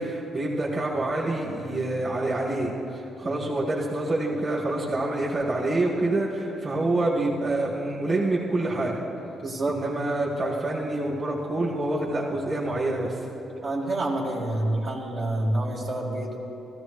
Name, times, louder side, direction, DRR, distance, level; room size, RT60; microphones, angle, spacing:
voice 1, 0.0-2.7 3.2-8.9 9.7-13.2, right 2 dB, 40° right, -4 dB, 2.1 m, -27 dB
voice 2, 9.4-9.8 13.6-16.4, right 1 dB, 60° right, -5 dB, 2.1 m, -28 dB
15.5 x 14.0 x 3.2 m, 2.9 s
cardioid pair, 90°, 0 cm